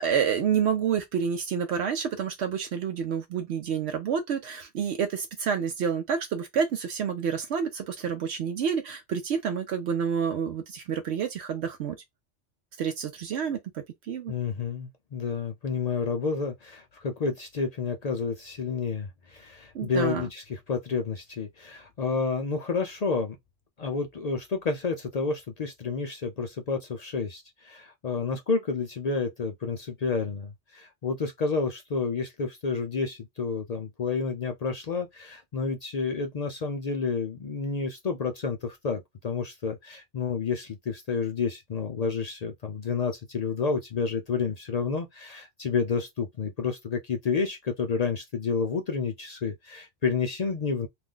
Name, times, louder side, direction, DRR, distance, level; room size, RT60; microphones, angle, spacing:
voice 1, 0.0-12.0 12.8-14.3 19.7-20.3, right 7 dB, 75° right, 0.8 m, -29 dB
voice 2, 14.3-23.4 23.8-50.9, left 5 dB, 55° left, 0.4 m, -30 dB
2.5 x 2.3 x 3.6 m
omnidirectional pair, 1.2 m